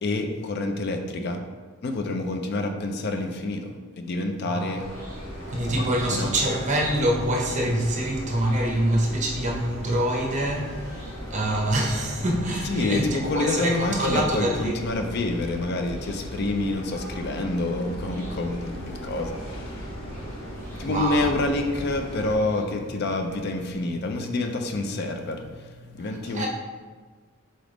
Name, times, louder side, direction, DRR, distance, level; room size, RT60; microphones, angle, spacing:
voice 1, 0.0-1.4 1.8-3.7 4.0-4.8 5.7-6.3 12.6-19.8 20.8-26.5, left 2 dB, 55° left, 5 dB, 0.4 m, -28 dB
voice 2, 4.5-4.8 5.5-14.8 20.5-21.3 26.0-26.5, right 1 dB, 35° right, 0 dB, 0.7 m, -26 dB
Chicken rooster / Cricket, 4.7-23.8, equal, 10° left, 1.4 m, -48 dB
sound 1, 4.8-22.4, equal, 90° left, 1.0 m, -37 dB
4.0 x 3.4 x 3.9 m, 1.4 s
head